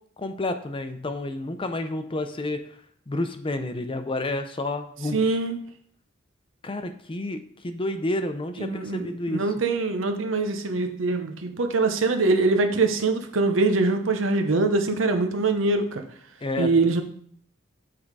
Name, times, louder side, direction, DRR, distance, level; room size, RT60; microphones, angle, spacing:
voice 1, 0.2-2.6 3.1-5.4 6.6-9.4 16.4-16.8, left 2 dB, 25° left, 8 dB, 0.6 m, -30 dB
voice 2, 5.1-5.6 8.6-16.0 16.6-17.0, right 3 dB, 80° right, 7 dB, 0.8 m, -23 dB
8.6 x 3.7 x 4.7 m, 0.62 s
head